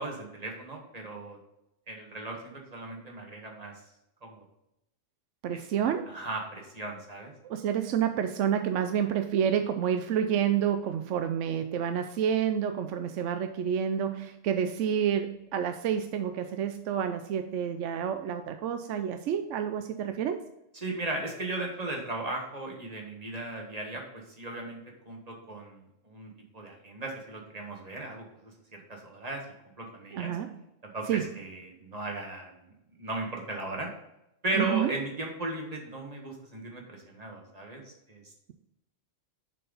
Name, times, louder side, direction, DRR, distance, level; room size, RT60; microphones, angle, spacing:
voice 1, 0.0-1.4 1.9-3.7 4.2-4.4 6.1-7.3 20.7-24.8 25.1-25.8 26.0-28.2 28.9-29.4 29.8-30.3 30.9-32.5 33.0-33.9 34.4-38.2, right 2 dB, 30° right, 0 dB, 1.7 m, -36 dB
voice 2, 5.4-6.2 7.4-20.4 30.1-30.5 31.1-31.3 34.5-34.9, right 8 dB, 75° right, 7 dB, 0.9 m, -29 dB
7.2 x 4.6 x 5.4 m, 0.86 s
omnidirectional pair, 1.3 m